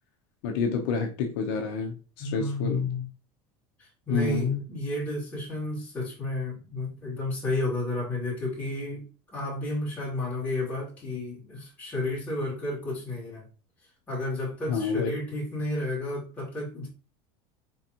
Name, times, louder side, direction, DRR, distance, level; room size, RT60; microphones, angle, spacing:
voice 1, 0.4-2.9 4.1-4.6 14.7-15.1, left 5 dB, 60° left, 2 dB, 0.8 m, -28 dB
voice 2, 2.2-3.0 3.8-9.0 9.3-13.4 14.1-16.9, left 2 dB, 10° left, -6 dB, 2.5 m, -32 dB
4.5 x 3.9 x 2.9 m, 0.35 s
cardioid pair, 170°, 13 cm